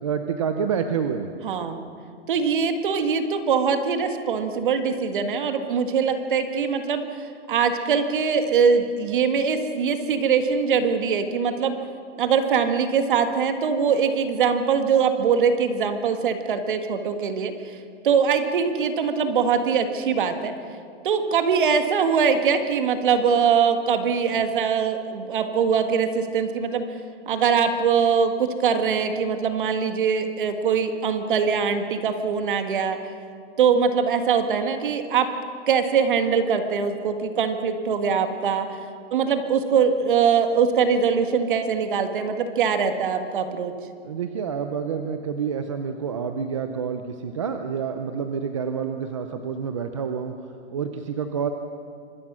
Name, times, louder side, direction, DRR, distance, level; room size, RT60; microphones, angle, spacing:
voice 1, 0.0-1.3 44.0-50.3 50.7-51.5, right 6 dB, 25° right, 7 dB, 0.6 m, -28 dB
voice 2, 1.4-1.9 2.3-11.8 12.2-17.8 18.0-20.5 21.0-26.9 27.3-33.0 33.6-35.3 35.7-38.8 39.1-43.7, right 6 dB, 45° right, 7 dB, 1.9 m, -22 dB
26.0 x 22.0 x 6.3 m, 2.4 s
hypercardioid pair, 175°, 36 cm